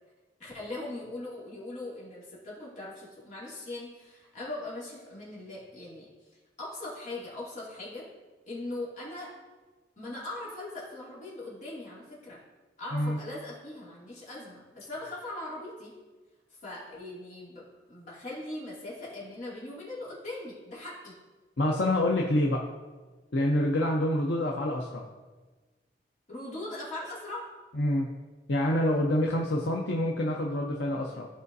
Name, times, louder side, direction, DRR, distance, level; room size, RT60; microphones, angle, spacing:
voice 1, 0.4-6.1 6.6-8.1 8.5-9.4 10.0-12.4 12.8-15.9 16.6-21.2 26.3-27.5, left 2 dB, 45° left, -7 dB, 2.5 m, -40 dB
voice 2, 21.6-22.7 23.3-25.0 27.8-28.1 28.5-31.3, left 1 dB, 80° left, -1 dB, 0.7 m, -27 dB
14.5 x 5.0 x 2.7 m, 1.3 s
head